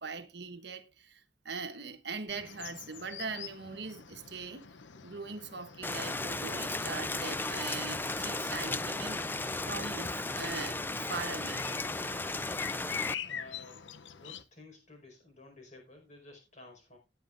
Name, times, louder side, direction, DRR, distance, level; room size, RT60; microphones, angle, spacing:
voice 1, 0.0-4.7 5.0-9.4 9.7-11.7, right 4 dB, 65° right, 1.1 m, -41 dB
sound 1, 2.3-14.4, left 8 dB, 90° left, 0.7 m, -45 dB
Rain, 5.8-13.1, left 2 dB, 10° left, 0.4 m, -35 dB
voice 2, 13.1-13.8 14.1-17.0, left 2 dB, 40° left, 4.9 m, -53 dB
17.0 x 9.2 x 2.5 m
head